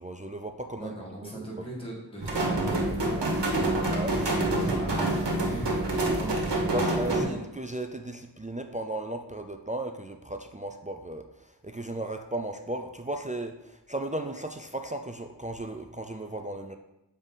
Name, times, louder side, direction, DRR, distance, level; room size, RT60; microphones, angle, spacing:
voice 1, 0.0-1.5 3.6-4.1 6.7-16.8, right 1 dB, 20° right, 5 dB, 0.4 m, -36 dB
voice 2, 0.7-3.3 3.6-5.7 6.1-6.4 6.7-7.4, right 1 dB, 10° left, -5 dB, 1.8 m, -38 dB
sound 1, 2.2-7.2, right 2 dB, 70° right, 1.3 m, -27 dB
6.9 x 4.0 x 3.7 m, 0.89 s
wide cardioid pair, 65°, 44 cm